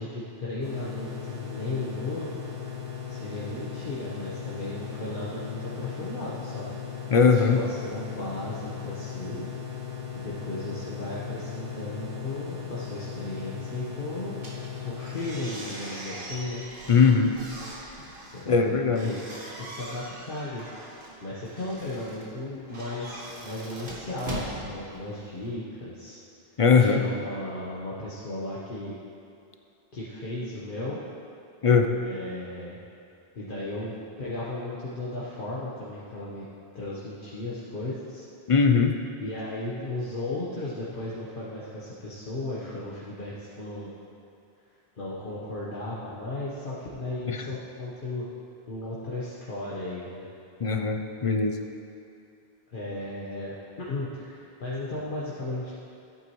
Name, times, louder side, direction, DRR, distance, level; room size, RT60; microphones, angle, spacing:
voice 1, 0.0-2.3 3.1-6.8 7.3-9.5 10.1-14.4 14.8-16.6 18.3-19.3 19.6-20.7 21.2-26.2 26.8-28.9 29.9-31.0 32.0-32.8 33.3-36.4 36.7-38.3 39.2-43.9 45.0-48.3 48.7-50.3 52.7-55.7, left 2 dB, 55° left, -8 dB, 1.3 m, -35 dB
sound 1, 0.6-15.4, left 7 dB, 30° right, 2.8 m, -37 dB
voice 2, 7.1-7.6 16.9-17.3 18.5-19.1 26.6-27.0 31.6-31.9 38.5-38.9 47.3-47.4 50.6-51.6, left 5 dB, 40° left, 4 dB, 0.5 m, -20 dB
sound 2, 14.3-25.5, right 1 dB, 60° right, 1.8 m, -41 dB
14.5 x 8.5 x 3.1 m, 2.6 s
omnidirectional pair, 1.0 m